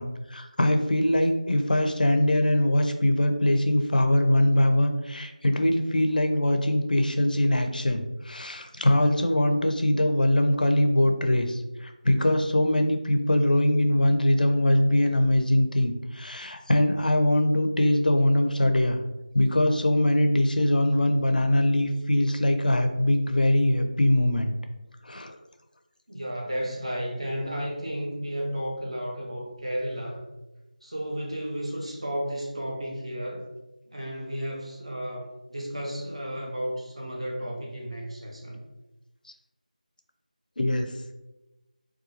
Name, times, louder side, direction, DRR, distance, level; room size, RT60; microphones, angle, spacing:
voice 1, 0.0-19.0 19.3-24.5 25.0-25.4 40.6-40.9, left 1 dB, 80° left, 5 dB, 0.4 m, -22 dB
voice 2, 26.1-30.2 30.8-33.5 33.9-38.6, equal, 45° right, -2 dB, 0.6 m, -33 dB
2.7 x 2.3 x 2.7 m, 1.0 s
figure-of-eight pair, 180°, 5 cm